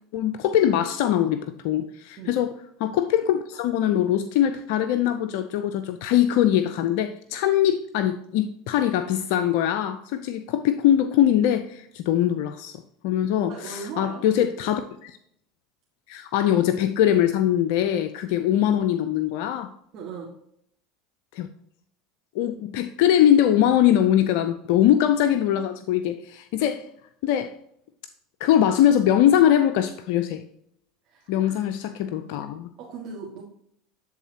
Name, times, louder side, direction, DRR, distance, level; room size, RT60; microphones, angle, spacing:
voice 1, 0.1-2.5 2.8-15.1 16.1-19.7 21.3-21.5 22.3-26.9 27.2-27.5 28.4-30.4 31.3-32.7, left 11 dB, 65° left, 10 dB, 0.5 m, -22 dB
voice 2, 13.5-14.8 19.9-20.3 31.1-31.7 32.0-32.3 32.8-33.4, right 5 dB, 55° right, -3 dB, 1.7 m, -39 dB
12.0 x 3.9 x 2.8 m, 0.71 s
hypercardioid pair, 85°, 0 cm